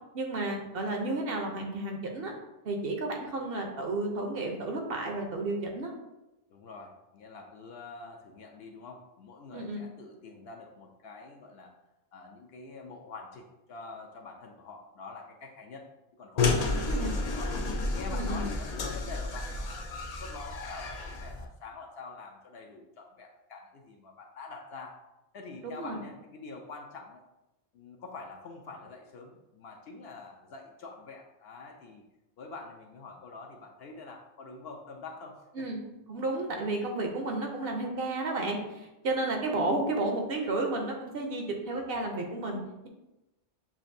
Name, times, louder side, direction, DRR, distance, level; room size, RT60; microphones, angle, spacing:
voice 1, 0.1-2.3 2.6-5.9 9.5-9.8 16.8-17.1 18.1-18.4 25.8-26.0 35.6-35.8 36.1-42.9, right 2 dB, 60° right, 2 dB, 0.8 m, -32 dB
voice 2, 6.5-11.7 12.1-17.5 17.9-24.9 25.3-27.2 27.7-32.0 32.4-35.7 39.5-39.7, left 3 dB, 65° left, 2 dB, 0.7 m, -46 dB
sound 1, 16.4-21.5, left 3 dB, 80° left, 0.3 m, -31 dB
7.0 x 2.5 x 2.6 m, 0.96 s
omnidirectional pair, 1.2 m